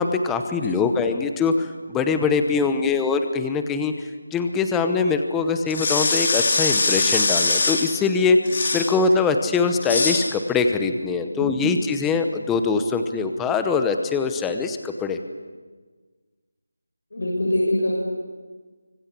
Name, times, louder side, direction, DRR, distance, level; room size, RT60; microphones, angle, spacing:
voice 1, 0.0-3.9 4.3-8.4 8.7-15.2, left 4 dB, 5° left, 7 dB, 0.8 m, -22 dB
sound 1, 5.7-7.9 8.5-8.9 9.8-10.3, left 3 dB, 30° left, 2.8 m, -22 dB
voice 2, 11.3-11.7 17.1-18.0, left 1 dB, 60° left, -2 dB, 6.8 m, -24 dB
25.5 x 24.5 x 8.4 m, 1.4 s
figure-of-eight pair, 180°, 0 cm